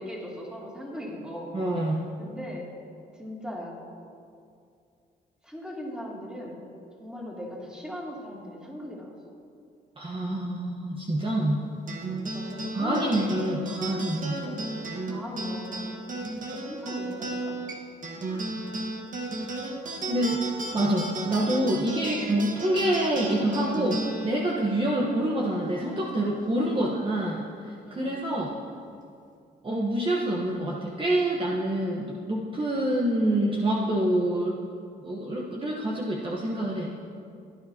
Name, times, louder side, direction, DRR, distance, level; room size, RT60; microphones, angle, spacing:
voice 1, 0.0-1.5 2.2-2.7 3.2-3.8 5.4-6.6 7.0-9.1 12.2-13.8 14.4-14.7 15.1-16.0 16.5-17.6 18.3-18.6 26.6-26.8 27.8-28.2, equal, 5° right, -4 dB, 2.8 m, -39 dB
voice 2, 1.5-2.1 10.0-11.6 12.7-14.4 18.3-18.5 20.1-20.4 20.7-28.5 29.6-34.6 35.0-36.9, right 1 dB, 30° right, -3 dB, 1.2 m, -27 dB
sound 1, 11.9-26.6, right 2 dB, 45° right, 1.6 m, -35 dB
16.0 x 9.8 x 2.9 m, 2.4 s
cardioid pair, 80°, 19 cm